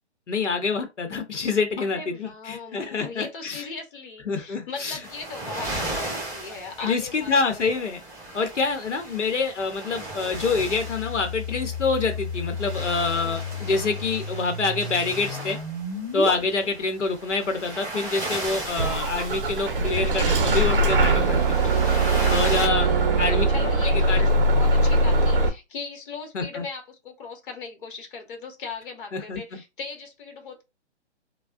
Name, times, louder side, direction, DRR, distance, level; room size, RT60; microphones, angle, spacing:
voice 1, 0.3-3.7 4.3-5.0 6.8-8.0 8.3-15.6 16.1-21.6 22.3-22.9 23.2-23.5 24.1-24.3 26.3-26.6 29.1-29.6, left 4 dB, 90° left, 0.9 m, -26 dB
voice 2, 1.8-7.7 13.2-13.4 16.3-16.7 22.2-23.2 23.5-30.6, left 4 dB, 50° left, 1.0 m, -38 dB
sound 1, 5.0-22.7, right 1 dB, 10° right, 1.1 m, -37 dB
sound 2, 10.3-16.3, left 4 dB, 10° left, 1.9 m, -33 dB
Bus / Engine starting, 18.8-25.5, right 2 dB, 50° right, 0.6 m, -21 dB
3.4 x 2.2 x 2.4 m
hypercardioid pair, 145°, 35 cm